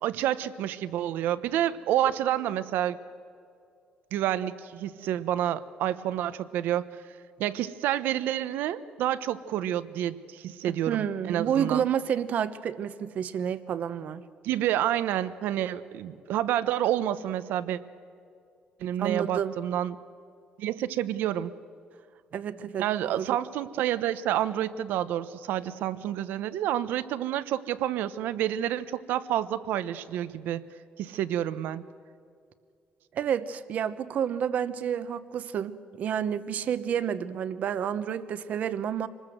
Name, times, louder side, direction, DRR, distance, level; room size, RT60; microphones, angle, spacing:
voice 1, 0.0-3.0 4.1-6.8 7.4-11.8 14.4-17.8 18.8-20.0 20.6-21.5 22.8-30.6 31.0-31.8, right 12 dB, 80° right, 14 dB, 0.9 m, -29 dB
voice 2, 10.9-14.2 19.0-19.6 22.3-23.3 33.1-39.1, right 8 dB, 50° right, 13 dB, 0.9 m, -30 dB
26.0 x 20.0 x 7.9 m, 2.4 s
cardioid pair, 155°, 3 cm